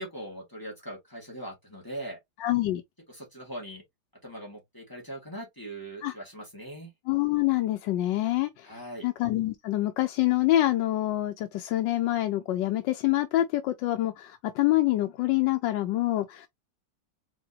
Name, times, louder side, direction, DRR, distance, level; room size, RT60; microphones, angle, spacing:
voice 1, 0.0-2.2 3.1-3.8 4.2-6.9 8.6-9.1, right 1 dB, 10° left, 2.0 m, -40 dB
voice 2, 2.4-2.8 6.0-6.1 7.1-16.5, left 15 dB, 85° left, 1.3 m, -26 dB
4.9 x 3.6 x 2.7 m
omnidirectional pair, 1.9 m